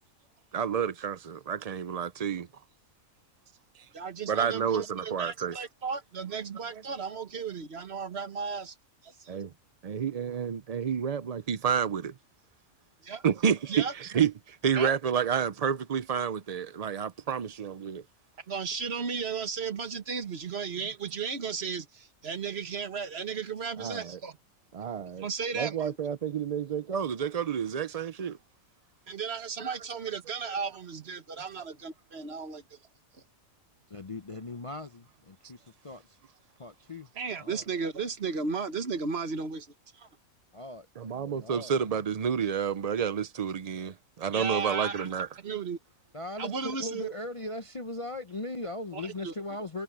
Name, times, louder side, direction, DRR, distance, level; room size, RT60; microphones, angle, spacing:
voice 1, 0.5-2.5 4.3-5.6 9.3-9.5 9.8-12.1 13.2-18.0 23.8-24.2 24.7-25.3 25.5-28.4 29.6-29.8 41.0-45.3, right 7 dB, 85° right, 0.3 m, -30 dB
voice 2, 3.9-8.7 13.0-13.2 13.7-13.9 14.8-14.9 18.5-24.4 25.2-26.0 29.1-32.6 37.2-39.7 44.3-45.1 45.4-45.8 46.4-47.1 48.9-49.3, right 5 dB, 50° right, 1.4 m, -34 dB
voice 3, 33.9-36.2 36.6-37.1 37.4-37.6 40.5-41.7 46.1-49.8, left 2 dB, 35° left, 0.6 m, -39 dB
omnidirectional pair, 1.5 m